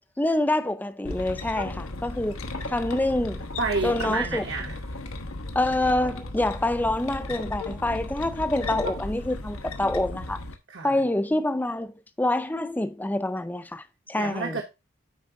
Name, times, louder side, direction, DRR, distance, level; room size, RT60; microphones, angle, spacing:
voice 1, 0.2-2.4 2.7-3.4 3.8-4.4 5.5-10.4 10.8-11.9 12.2-14.6, left 1 dB, 10° left, 0.4 m, -26 dB
sound 1, 1.0-10.5, left 2 dB, 90° left, 1.1 m, -35 dB
voice 2, 3.6-4.8 10.7-11.0 14.2-14.6, right 4 dB, 60° right, 1.1 m, -29 dB
9.5 x 4.4 x 3.7 m
head